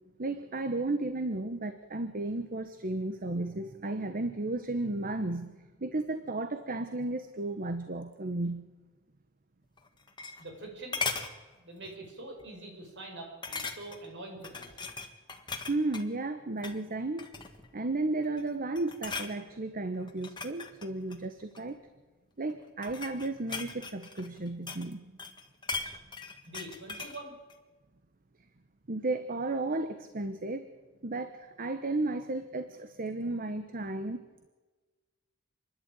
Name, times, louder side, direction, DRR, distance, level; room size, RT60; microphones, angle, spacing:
voice 1, 0.2-5.5 5.8-8.6 15.7-17.4 17.7-21.8 22.4-25.1 28.9-30.7 31.0-34.5, right 2 dB, 45° right, 9 dB, 1.1 m, -34 dB
sound 1, 9.8-10.6 10.9-11.3 11.8-12.1 12.4-12.5 13.4-14.1 14.4-16.1 16.5-16.8 17.2-17.7 18.2-18.5 18.7-19.3 20.1-21.7 22.5-24.9 25.2-27.2 27.5-27.6, left 4 dB, 20° left, 1.8 m, -38 dB
voice 2, 10.4-11.0 11.6-14.9 26.5-27.3, right 2 dB, 60° right, 2 dB, 6.8 m, -45 dB
28.0 x 11.5 x 9.1 m, 1.3 s
head